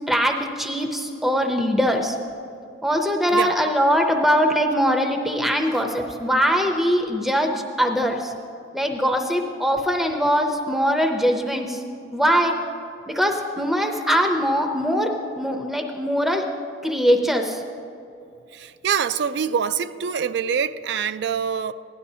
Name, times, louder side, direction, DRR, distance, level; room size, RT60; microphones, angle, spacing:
voice 1, 0.1-2.2 2.8-8.3 8.7-11.8 12.1-12.6 13.1-16.4 16.8-17.6, equal, ahead, 0.6 m, -22 dB
voice 2, 18.5-21.7, right 7 dB, 65° right, 0.3 m, -25 dB
16.0 x 11.0 x 2.7 m
head